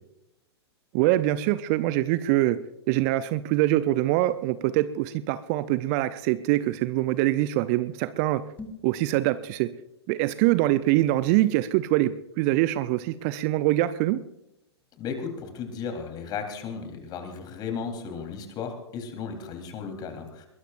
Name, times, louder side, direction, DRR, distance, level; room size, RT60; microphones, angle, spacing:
voice 1, 0.9-2.6 2.9-8.4 8.8-9.7 10.1-14.2, right 16 dB, 35° right, 14 dB, 0.6 m, -24 dB
sound 1, 8.5-9.0, left 3 dB, 10° left, 2.6 m, -41 dB
voice 2, 15.0-20.5, left 6 dB, 30° left, 5 dB, 3.8 m, -35 dB
21.5 x 21.0 x 2.6 m, 0.87 s
figure-of-eight pair, 105°, 14 cm